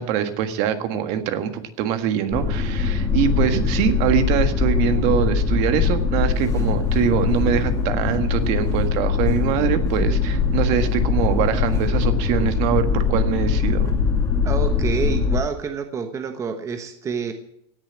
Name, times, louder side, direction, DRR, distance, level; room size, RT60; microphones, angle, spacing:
voice 1, 0.0-13.9, right 9 dB, 50° right, 8 dB, 1.7 m, -23 dB
sound 1, 2.3-15.4, left 5 dB, 20° left, 2.5 m, -21 dB
voice 2, 14.4-17.3, right 6 dB, 20° right, 7 dB, 1.1 m, -28 dB
17.5 x 7.0 x 8.7 m, 0.78 s
supercardioid pair, 135°, 14 cm